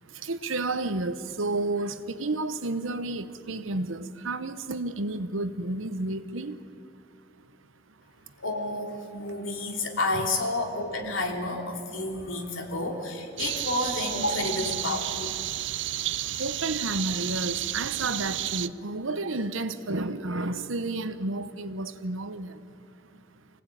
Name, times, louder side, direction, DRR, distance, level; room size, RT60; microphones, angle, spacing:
voice 1, 0.1-6.6 9.3-9.4 10.1-10.2 15.4-15.5 16.0-22.6 23.1-23.2, right 2 dB, 85° right, 1.1 m, -31 dB
voice 2, 8.4-15.3, left 2 dB, 80° left, 3.2 m, -30 dB
sound 1, 13.4-18.7, right 14 dB, 65° right, 0.5 m, -32 dB
25.0 x 17.5 x 9.1 m
head